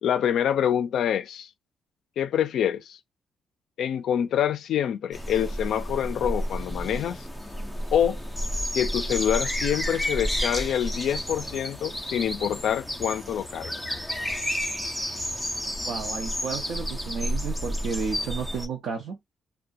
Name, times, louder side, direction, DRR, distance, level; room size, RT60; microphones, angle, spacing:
voice 1, 0.0-1.5 2.2-3.0 3.8-7.2 7.9-8.2 8.7-13.7, left 9 dB, 60° left, 0.4 m, -26 dB
sound 1, 5.1-18.7, equal, ahead, 0.4 m, -31 dB
voice 2, 15.8-19.2, right 5 dB, 60° right, 0.6 m, -32 dB
2.4 x 2.1 x 2.5 m
cardioid pair, 175°, 0 cm